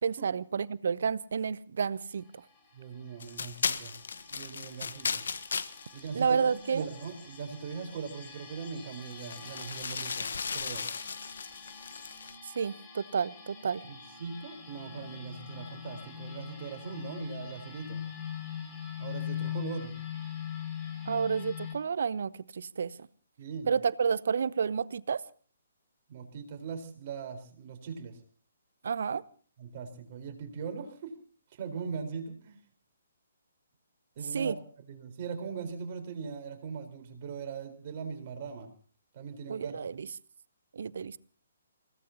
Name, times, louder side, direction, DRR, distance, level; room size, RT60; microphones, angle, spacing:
voice 1, 0.0-2.2 6.1-6.9 12.4-13.8 21.1-23.1 23.7-25.2 28.8-29.2 34.3-34.6 39.5-40.1 40.7-41.2, right 6 dB, 55° right, 21 dB, 0.7 m, -30 dB
sound 1, 2.1-21.7, left 8 dB, 20° left, 5.7 m, -43 dB
voice 2, 2.7-3.9 4.3-5.2 5.9-10.9 13.9-18.0 19.0-19.9 23.4-23.7 26.1-28.2 29.6-31.2 31.5-32.6 34.2-38.7 39.1-39.8, right 6 dB, 35° right, 5 dB, 4.2 m, -40 dB
sound 2, 3.2-7.5 8.1-8.3 8.6-12.4, left 5 dB, 55° left, 1.2 m, -37 dB
29.0 x 17.5 x 2.9 m, 0.43 s
figure-of-eight pair, 130°, 0 cm